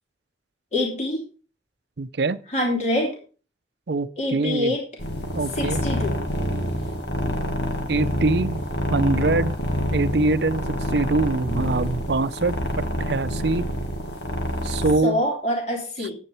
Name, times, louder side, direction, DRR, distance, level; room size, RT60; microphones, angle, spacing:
voice 1, 0.7-1.2 2.5-3.2 4.2-4.8 5.5-6.2 15.0-16.2, left 1 dB, 40° left, -1 dB, 3.2 m, -25 dB
voice 2, 2.0-2.4 3.9-4.7 5.3-5.8 7.9-8.6 8.9-9.6 9.9-10.7 10.9-13.7 14.6-15.2, right 3 dB, 65° right, 13 dB, 0.6 m, -23 dB
sound 1, 5.0-14.9, equal, 70° left, 2.0 m, -27 dB
9.9 x 8.7 x 4.4 m, 0.37 s
head